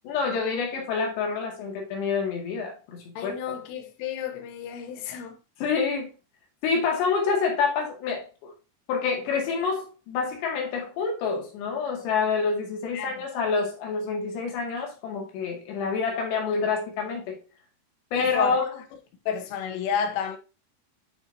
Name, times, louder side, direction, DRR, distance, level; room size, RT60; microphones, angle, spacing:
voice 1, 0.0-3.3 5.6-6.1 6.6-8.5 8.9-17.4 18.1-18.7, left 5 dB, 65° left, 3.7 m, -27 dB
voice 2, 3.2-5.4 12.9-13.2 18.2-18.6 19.3-20.4, left 7 dB, 80° left, 3.4 m, -31 dB
8.9 x 5.4 x 2.8 m
omnidirectional pair, 5.9 m